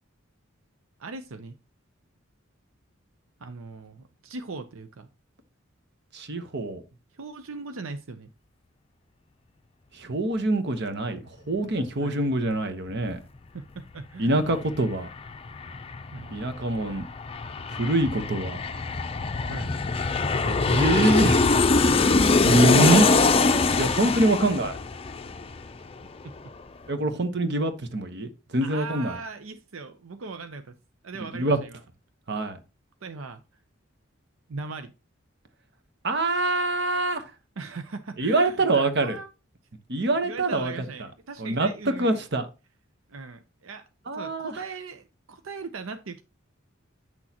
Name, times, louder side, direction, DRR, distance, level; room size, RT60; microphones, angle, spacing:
voice 1, 1.0-1.6 3.4-5.1 7.1-8.3 12.0-12.2 13.5-14.6 16.1-16.4 19.5-19.7 24.3-24.4 28.6-30.7 31.0-31.8 33.0-33.4 34.5-34.9 37.6-39.3 40.0-42.2 43.1-43.9 44.1-46.2, right 4 dB, 90° right, 0.7 m, -39 dB
voice 2, 6.1-6.8 9.9-11.2 11.5-13.2 14.2-15.1 16.3-17.0 17.7-18.6 20.4-21.4 22.4-23.1 23.8-24.8 26.9-29.1 31.3-31.6 32.3-32.6 36.0-37.2 38.2-39.2 39.9-40.7 41.4-42.5 44.1-44.6, right 2 dB, 60° right, 1.1 m, -24 dB
Aircraft, 14.4-14.5 14.8-26.1 26.4-26.5, left 3 dB, 30° left, 0.5 m, -23 dB
8.8 x 6.3 x 2.9 m
head